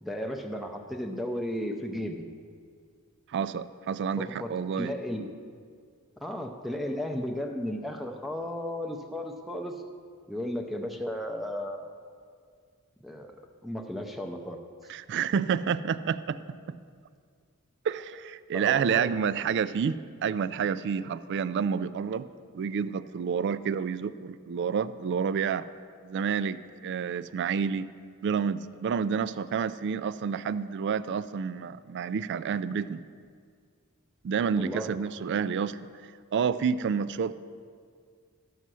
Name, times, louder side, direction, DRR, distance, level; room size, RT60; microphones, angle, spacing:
voice 1, 0.0-2.2 4.2-4.5 4.8-5.3 6.2-9.7 10.3-11.9 13.0-13.4 13.6-14.6 18.5-19.1 34.5-34.9, left 1 dB, ahead, 3 dB, 0.5 m, -34 dB
voice 2, 3.3-4.9 14.9-16.8 17.8-22.3 22.5-25.7 26.0-27.9 28.2-33.0 34.2-35.8 36.3-37.3, right 6 dB, 55° right, 15 dB, 0.3 m, -29 dB
13.5 x 5.5 x 6.2 m, 2.1 s
head